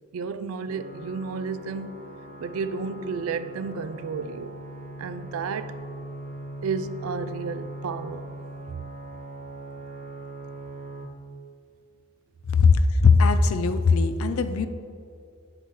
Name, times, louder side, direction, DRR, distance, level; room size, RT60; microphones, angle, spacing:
voice 1, 0.1-1.9 2.4-4.6 5.0-5.8 6.6-8.4 8.7-8.8, right 5 dB, 80° right, 0.4 m, -32 dB
sound 1, 0.7-11.1, right 1 dB, 40° right, 0.7 m, -40 dB
voice 2, 13.0-14.7, left 4 dB, 85° left, 0.5 m, -19 dB
8.4 x 7.7 x 3.2 m
head